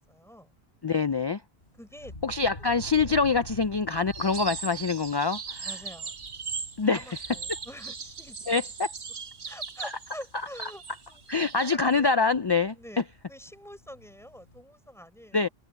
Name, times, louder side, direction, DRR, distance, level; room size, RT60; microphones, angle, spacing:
voice 1, 0.1-0.5 1.8-2.1 5.6-6.1 6.9-8.5 9.4-11.2 11.5-12.1 12.7-15.5, equal, ahead, 5.2 m, -46 dB
voice 2, 0.8-1.4 2.2-5.7 6.8-7.1 8.5-8.9 9.8-9.9 11.3-12.8 15.3-15.5, left 4 dB, 40° left, 0.3 m, -25 dB
sound 1, 1.6-14.6, left 2 dB, 70° left, 3.8 m, -49 dB
sound 2, 4.1-11.8, right 5 dB, 55° right, 1.3 m, -39 dB
omnidirectional pair, 1.1 m